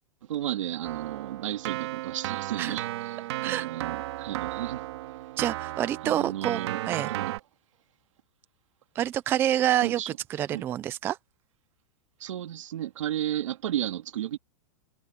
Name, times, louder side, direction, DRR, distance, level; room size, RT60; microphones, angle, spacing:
voice 1, 0.3-4.8 6.0-6.8 7.1-7.3 9.8-10.1 10.5-10.6 12.2-14.4, right 12 dB, 80° right, 2.1 m, -33 dB
Keyboard (musical), 0.8-7.4, right 16 dB, 55° right, 2.7 m, -34 dB
voice 2, 5.4-6.6 6.9-7.1 9.0-11.2, right 12 dB, 15° right, 0.4 m, -27 dB
supercardioid pair, 165°, 16 cm